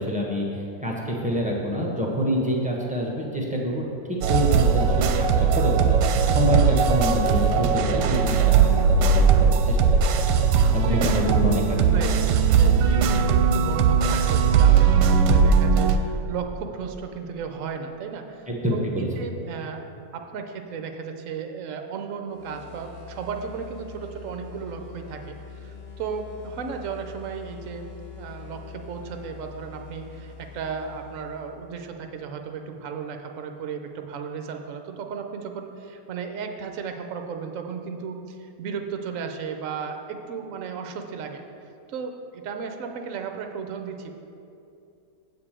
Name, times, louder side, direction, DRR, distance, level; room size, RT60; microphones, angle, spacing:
voice 1, 0.0-10.1 10.7-12.0 18.5-19.1, equal, 5° right, -2 dB, 0.8 m, -27 dB
sound 1, 4.2-16.0, right 6 dB, 75° right, 1.2 m, -19 dB
voice 2, 10.9-11.5 11.9-19.8 20.1-27.9 28.2-41.4 41.9-44.1, right 6 dB, 60° right, 5 dB, 0.9 m, -35 dB
sound 2, 22.3-31.8, left 6 dB, 40° left, 1.0 m, -43 dB
8.2 x 4.9 x 7.4 m, 2.6 s
omnidirectional pair, 2.0 m